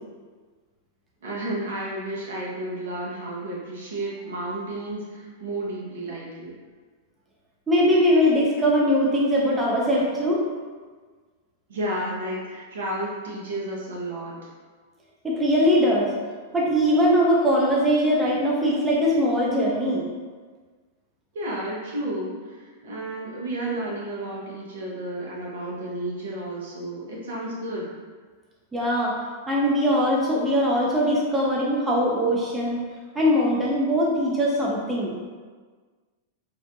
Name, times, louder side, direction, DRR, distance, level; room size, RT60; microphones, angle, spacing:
voice 1, 1.2-6.5 11.7-14.3 21.3-27.9, right 1 dB, 65° right, -5 dB, 0.7 m, -32 dB
voice 2, 7.7-10.5 15.2-16.1 16.5-20.0 28.7-29.2 29.5-32.8 33.2-35.1, equal, 15° right, -4 dB, 0.4 m, -21 dB
2.5 x 2.1 x 2.6 m, 1.5 s
figure-of-eight pair, 95°, 0 cm